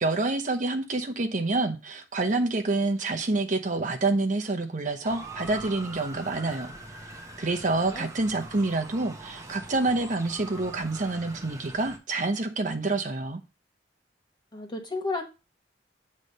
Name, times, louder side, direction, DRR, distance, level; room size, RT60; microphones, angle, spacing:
voice 1, 0.0-6.7 7.4-13.4, right 2 dB, 45° right, 0.8 m, -27 dB
Motor vehicle (road) / Siren, 5.0-12.0, right 2 dB, 20° right, 1.0 m, -43 dB
voice 2, 14.5-15.2, left 3 dB, 25° left, 1.4 m, -32 dB
8.3 x 3.2 x 5.4 m
head